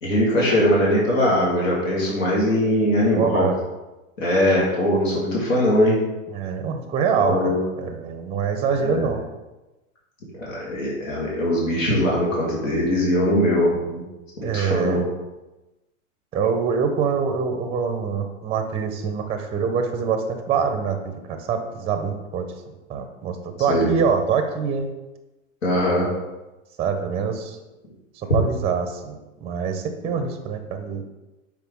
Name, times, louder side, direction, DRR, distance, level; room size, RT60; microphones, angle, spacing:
voice 1, 0.0-3.5 4.2-6.0 7.2-7.6 8.8-9.1 10.4-14.0 14.4-15.0 23.7-23.9 25.6-26.1, left 1 dB, 85° left, -5 dB, 1.9 m, -21 dB
voice 2, 3.2-3.6 6.3-9.3 14.4-15.0 16.3-24.9 26.8-27.6 28.2-31.0, right 6 dB, 15° right, 6 dB, 0.5 m, -25 dB
5.9 x 4.5 x 3.6 m, 1.0 s
hypercardioid pair, 120°, 39 cm